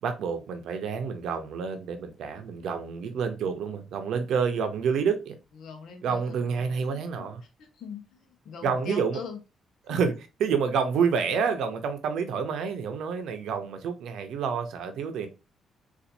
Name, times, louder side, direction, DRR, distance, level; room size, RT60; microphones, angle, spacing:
voice 1, 0.0-5.4 6.0-7.4 8.6-9.2 9.9-15.3, right 6 dB, 75° right, 0.7 m, -28 dB
voice 2, 5.6-6.6 7.6-9.4 9.9-10.0, left 6 dB, 75° left, 0.8 m, -42 dB
4.1 x 2.5 x 2.6 m
cardioid pair, 90°, 0 cm